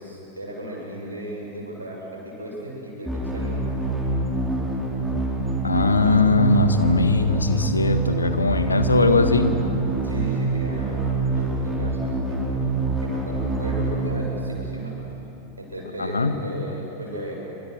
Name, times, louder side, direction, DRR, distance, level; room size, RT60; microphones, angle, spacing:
voice 1, 0.0-3.6 10.0-12.7 13.0-14.9 15.6-17.3, right 1 dB, 80° right, -2 dB, 7.3 m, -35 dB
sound 1, 3.1-15.0, right 2 dB, 5° left, 5.3 m, -26 dB
voice 2, 5.6-9.6 16.0-16.3, left 3 dB, 80° left, 9 dB, 1.6 m, -20 dB
29.5 x 25.5 x 6.3 m, 2.9 s
figure-of-eight pair, 90°, 0 cm